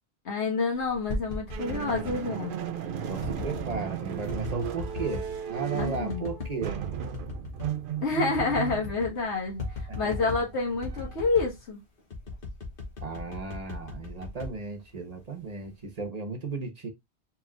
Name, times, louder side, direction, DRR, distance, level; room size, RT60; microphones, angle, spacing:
voice 1, 0.2-2.6 5.7-6.2 8.0-11.8, left 3 dB, 75° left, 1.6 m, -28 dB
sound 1, 0.8-2.2 3.2-3.8 4.3-5.3 5.8-6.6 7.0-7.7 8.0-8.1 8.3-9.2 9.6-10.5 10.8-11.6 12.1-15.2 15.6-16.0, left 3 dB, 55° left, 1.3 m, -37 dB
sound 2, 1.5-11.6, right 9 dB, 60° right, 0.6 m, -36 dB
voice 2, 1.6-2.2 3.1-6.8 9.9-10.3 13.0-16.9, right 4 dB, 35° right, 1.1 m, -35 dB
4.7 x 3.3 x 2.4 m
omnidirectional pair, 1.2 m